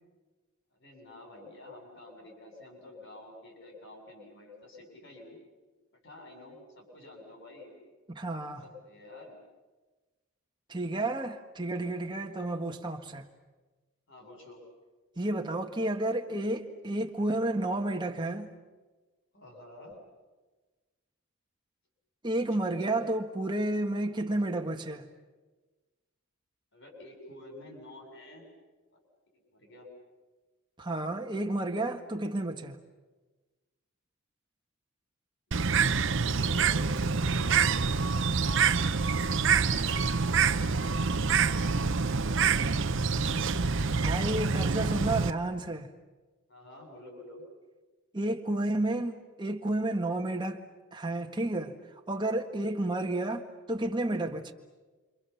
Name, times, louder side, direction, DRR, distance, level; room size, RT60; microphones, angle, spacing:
voice 1, 0.7-5.4 5.9-7.7 8.6-9.4 12.3-12.6 14.1-14.6 19.3-20.0 22.4-23.0 26.7-28.4 28.9-29.9 31.3-31.9 35.5-36.8 37.2-37.8 46.5-47.4, left 1 dB, 55° left, 7.8 m, -50 dB
voice 2, 8.1-8.6 10.7-13.3 15.2-18.5 22.2-25.1 30.8-32.8 44.0-45.9 48.1-50.6 50.9-51.8 52.1-54.5, right 2 dB, 20° right, 1.7 m, -31 dB
Bird, 35.5-45.3, right 5 dB, 60° right, 0.8 m, -26 dB
28.5 x 27.0 x 7.1 m
head